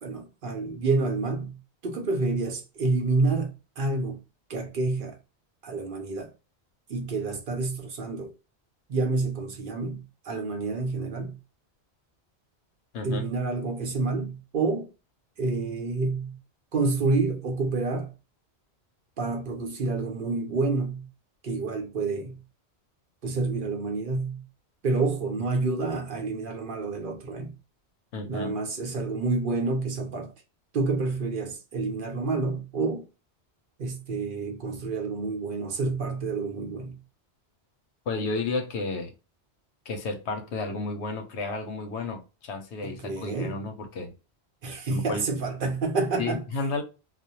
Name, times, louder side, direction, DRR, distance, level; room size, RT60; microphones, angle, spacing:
voice 1, 0.0-4.2 4.5-5.2 5.6-6.3 6.9-8.3 8.9-11.4 13.0-14.9 15.4-16.4 16.7-18.1 19.2-21.1 21.4-22.4 23.2-24.5 24.8-27.5 28.2-30.3 30.7-33.1 33.8-37.0 42.8-43.6 44.6-46.4, right 3 dB, 55° right, 0.7 m, -28 dB
voice 2, 28.1-28.6 38.1-39.1 39.9-44.1 44.9-45.2 46.2-46.8, left 3 dB, 85° left, 1.0 m, -32 dB
2.4 x 2.1 x 2.8 m
omnidirectional pair, 1.1 m